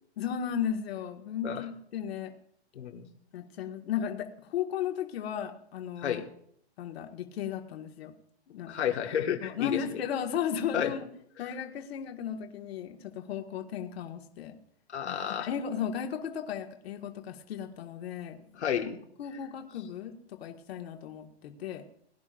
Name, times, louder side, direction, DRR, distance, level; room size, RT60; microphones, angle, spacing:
voice 1, 0.2-2.3 3.3-6.2 6.8-8.1 8.5-8.9 9.4-11.1 11.4-14.5 15.1-18.4 19.2-21.8, left 8 dB, 65° left, 4 dB, 1.9 m, -35 dB
voice 2, 2.8-3.1 6.0-6.3 8.7-9.8 10.7-10.9 14.9-15.5 18.6-19.0, left 9 dB, 85° left, 1 dB, 1.8 m, -31 dB
21.5 x 11.0 x 2.6 m, 0.66 s
hypercardioid pair, 140°, 33 cm